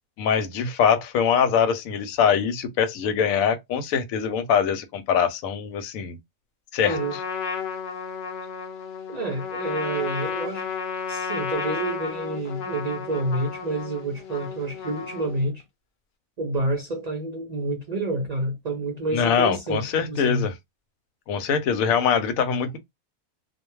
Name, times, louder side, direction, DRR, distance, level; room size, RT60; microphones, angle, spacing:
voice 1, 0.2-6.2 6.7-7.0 19.1-20.5 21.3-22.8, left 7 dB, 85° left, 1.0 m, -23 dB
Trumpet, 6.8-15.5, left 6 dB, 55° left, 0.8 m, -33 dB
voice 2, 6.8-7.1 9.1-10.7 11.1-15.6 16.4-20.5, right 2 dB, 70° right, 0.4 m, -28 dB
2.3 x 2.2 x 3.0 m
omnidirectional pair, 1.4 m